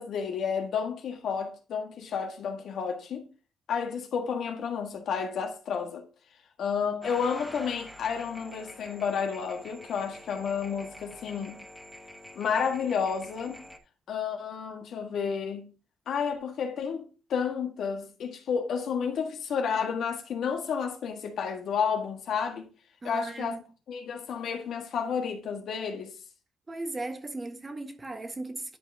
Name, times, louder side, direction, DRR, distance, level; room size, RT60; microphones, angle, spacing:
voice 1, 0.0-3.3 3.7-6.0 6.6-11.6 12.3-13.7 14.1-15.7 16.1-17.0 17.3-22.7 23.0-23.6 23.9-26.1, left 6 dB, 70° left, 1.6 m, -31 dB
sound 1, 7.0-13.8, left 1 dB, ahead, 1.2 m, -46 dB
voice 2, 23.0-23.6 26.7-28.8, right 2 dB, 25° right, 1.3 m, -37 dB
11.0 x 4.6 x 2.8 m
cardioid pair, 90°, 0 cm